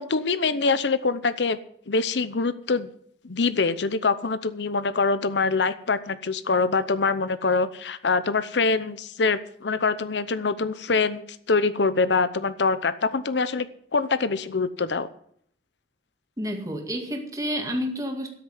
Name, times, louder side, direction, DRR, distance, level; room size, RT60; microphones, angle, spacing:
voice 1, 0.0-1.6 1.9-2.9 3.2-13.7 13.9-15.1, left 4 dB, 90° left, 14 dB, 0.8 m, -24 dB
voice 2, 16.4-18.3, equal, 20° right, 3 dB, 2.1 m, -29 dB
13.0 x 6.6 x 9.4 m, 0.66 s
head